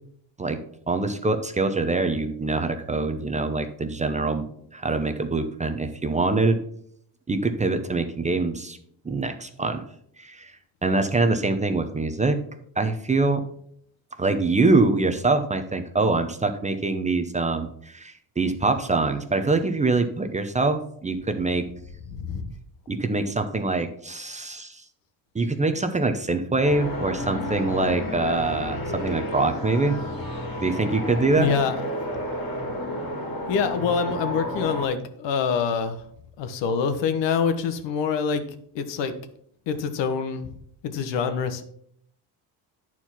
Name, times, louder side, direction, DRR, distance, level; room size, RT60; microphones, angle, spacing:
voice 1, 0.9-4.5 4.7-6.6 7.3-8.8 9.0-9.8 10.2-10.5 10.8-12.4 12.8-13.4 14.2-21.7 22.9-24.8 25.3-30.0 30.6-31.5, right 3 dB, 15° right, 7 dB, 0.6 m, -24 dB
voice 2, 22.1-22.5 31.4-31.7 33.5-36.0 36.4-38.4 38.7-39.1 39.7-40.5 40.8-41.6, left 6 dB, 75° left, 9 dB, 1.2 m, -25 dB
sound 1, 26.6-34.8, left 1 dB, 50° left, 2.5 m, -31 dB
9.7 x 4.6 x 5.8 m, 0.67 s
cardioid pair, 130°, 44 cm